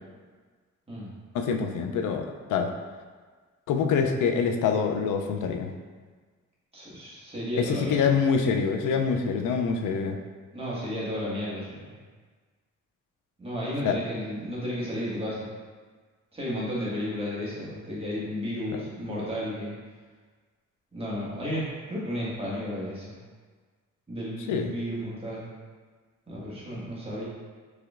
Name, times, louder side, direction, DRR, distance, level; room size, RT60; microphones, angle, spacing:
voice 1, 1.3-2.7 3.7-5.7 7.6-10.2 13.8-14.0 24.5-24.7, left 6 dB, 85° left, 4 dB, 0.5 m, -25 dB
voice 2, 6.7-8.0 10.5-12.0 13.4-15.5 16.3-19.8 20.9-23.2 24.1-25.5 26.3-27.2, equal, 20° right, -8 dB, 1.5 m, -33 dB
4.7 x 3.1 x 2.4 m, 1.5 s
cardioid pair, 85°, 30 cm